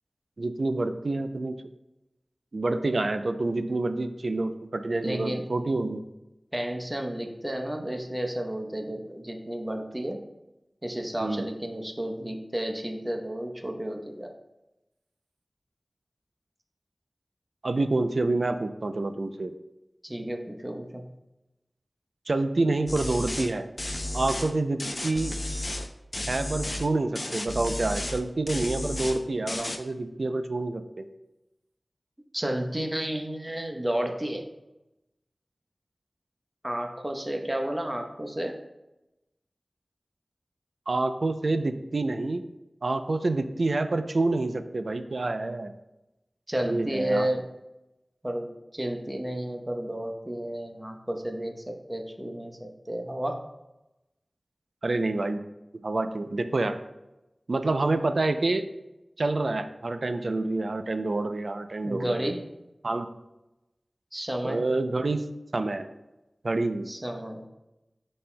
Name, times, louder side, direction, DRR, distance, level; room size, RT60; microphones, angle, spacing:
voice 1, 0.4-1.6 2.5-6.0 11.2-11.5 17.6-19.5 22.3-23.7 24.1-25.4 26.3-31.1 40.9-42.4 42.8-45.7 46.6-47.3 54.8-55.4 55.8-56.8 57.5-58.6 59.2-62.4 62.8-63.1 64.4-65.3 65.5-65.9 66.4-66.9, right 2 dB, 70° right, 9 dB, 0.4 m, -27 dB
voice 2, 5.0-5.5 6.5-10.2 10.8-14.3 20.0-21.1 32.3-34.4 36.6-38.6 46.5-47.4 48.2-48.5 48.7-53.4 61.8-62.4 64.1-64.7 66.9-67.4, right 1 dB, 20° right, 3 dB, 0.9 m, -32 dB
sound 1, 22.9-23.5 23.8-24.5 24.8-25.9 26.1-26.9 27.2-28.2 28.5-29.2 29.5-29.8, left 1 dB, 40° left, 0.6 m, -33 dB
11.0 x 4.3 x 2.2 m, 0.96 s
wide cardioid pair, 60°, 0 cm